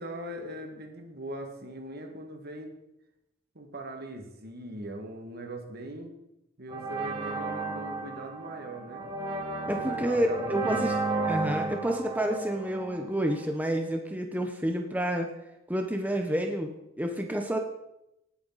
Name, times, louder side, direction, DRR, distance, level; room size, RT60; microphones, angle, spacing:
voice 1, 0.0-2.8 3.6-6.1 6.6-9.1 9.8-11.3, right 1 dB, 50° right, 3 dB, 2.0 m, -40 dB
sound 1, 6.7-13.5, right 3 dB, 25° right, 2.0 m, -33 dB
voice 2, 9.7-11.0 11.3-15.3 15.7-17.6, right 1 dB, 10° right, 3 dB, 0.9 m, -29 dB
19.0 x 8.8 x 4.1 m, 0.87 s
head